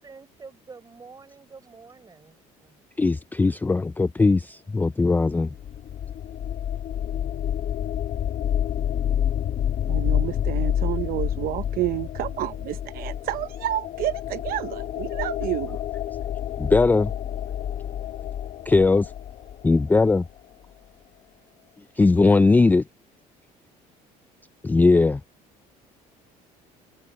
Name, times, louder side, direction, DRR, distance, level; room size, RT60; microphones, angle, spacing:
voice 1, 0.0-2.8, right 4 dB, 25° right, 5.8 m, -47 dB
voice 2, 3.0-5.5 16.6-17.1 18.7-19.1 19.6-20.2 22.0-22.8 24.6-25.2, left 3 dB, 10° left, 0.4 m, -19 dB
sound 1, 5.5-20.1, left 10 dB, 50° left, 1.6 m, -29 dB
voice 3, 9.9-15.8, right 15 dB, 65° right, 0.9 m, -30 dB
cardioid pair, 115°, 16 cm